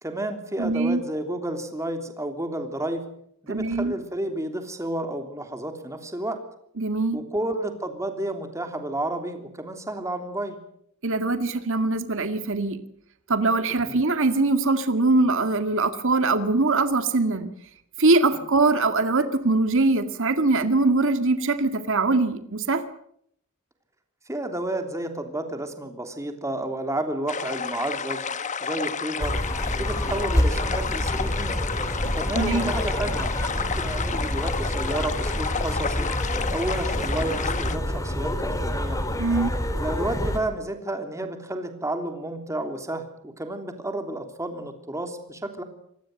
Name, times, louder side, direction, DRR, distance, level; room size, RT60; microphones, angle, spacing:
voice 1, 0.0-3.0 3.4-6.4 7.1-10.6 13.8-14.0 18.3-18.5 24.3-28.2 28.6-29.4 29.7-31.6 32.1-36.1 36.5-39.0 39.7-45.6, right 1 dB, 15° right, 6 dB, 3.2 m, -31 dB
voice 2, 0.6-1.0 3.5-3.9 6.8-7.2 11.0-12.8 13.3-17.5 18.0-22.8 32.4-32.7 39.2-39.5, right 3 dB, 60° right, 9 dB, 2.0 m, -22 dB
sound 1, 27.3-37.8, left 6 dB, 35° left, 1.2 m, -31 dB
sound 2, 29.2-40.4, left 1 dB, 15° left, 3.3 m, -27 dB
26.5 x 19.5 x 7.9 m, 0.71 s
head